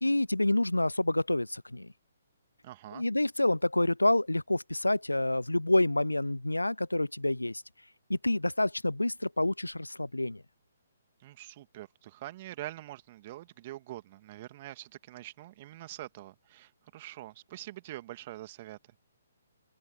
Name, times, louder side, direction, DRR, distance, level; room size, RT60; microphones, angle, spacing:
voice 1, 0.0-1.9 2.9-7.6 8.1-10.4, left 1 dB, 85° left, 0.5 m, -28 dB
voice 2, 2.6-3.0 11.2-18.8, right 16 dB, 35° right, 2.0 m, -44 dB
open air
figure-of-eight pair, 130°, 0 cm